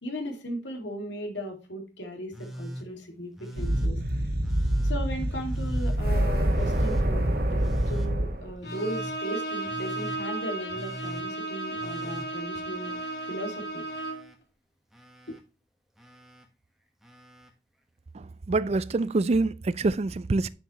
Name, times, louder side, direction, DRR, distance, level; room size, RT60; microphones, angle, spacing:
voice 1, 0.0-4.0 4.8-12.9 13.3-13.8 15.3-15.4, equal, 85° left, 2.4 m, -37 dB
Telephone, 2.3-2.9 3.4-3.9 4.4-5.0 5.5-6.0 6.5-7.1 7.6-8.1 8.6-9.2 9.6-10.2 10.7-11.3 11.7-13.3 13.6-14.4 14.9-15.4 16.0-16.5 17.0-17.5 18.7-18.8, right 1 dB, ahead, 1.2 m, -41 dB
sound 1, 3.6-8.5, right 1 dB, 55° right, 1.6 m, -26 dB
Bowed string instrument, 8.6-14.3, right 2 dB, 70° left, 1.7 m, -34 dB
voice 2, 18.1-20.5, right 3 dB, 35° right, 0.4 m, -26 dB
9.9 x 5.9 x 3.0 m
head